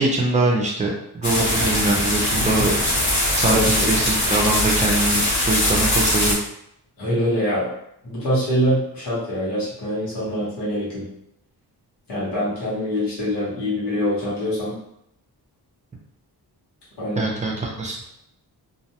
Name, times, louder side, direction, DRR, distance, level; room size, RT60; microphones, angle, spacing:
voice 1, 0.0-2.8 3.4-6.4 17.2-18.0, right 2 dB, 20° right, -2 dB, 0.4 m, -23 dB
sound 1, 1.2-6.3, left 1 dB, 45° left, 0.7 m, -21 dB
voice 2, 3.4-4.3 7.0-7.7 8.0-11.1 12.1-14.8 17.0-17.3, equal, 80° left, -9 dB, 1.2 m, -24 dB
2.5 x 2.1 x 2.8 m, 0.77 s
wide cardioid pair, 175°, 40 cm